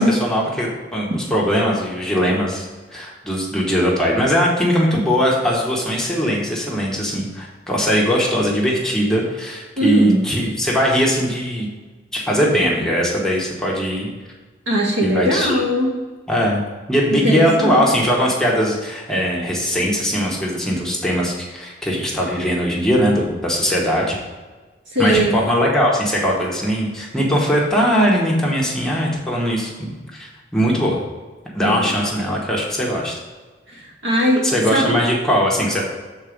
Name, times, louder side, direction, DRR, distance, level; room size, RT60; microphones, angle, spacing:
voice 1, 0.0-11.7 12.1-14.1 15.0-15.6 16.3-16.6 16.9-24.1 25.0-31.0 31.5-33.1 34.4-35.8, equal, 5° left, -4 dB, 1.2 m, -20 dB
voice 2, 9.8-10.2 14.7-15.9 17.1-17.8 24.9-25.4 31.6-31.9 33.7-34.4 34.7-34.9, equal, 75° right, -3 dB, 1.9 m, -19 dB
7.4 x 4.1 x 5.1 m, 1.3 s
head